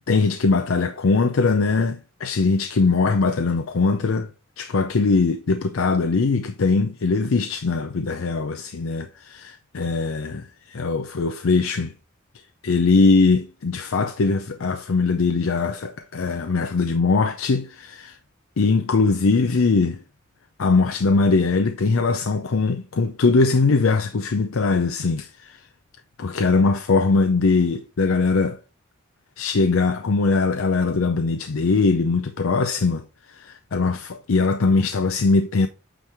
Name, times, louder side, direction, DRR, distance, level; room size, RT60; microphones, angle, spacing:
voice 1, 0.1-4.3 4.6-11.9 12.6-18.2 18.6-20.0 20.6-25.6 26.2-28.6 29.4-35.7, left 4 dB, 80° left, 0.5 m, -21 dB
8.9 x 3.3 x 4.3 m
head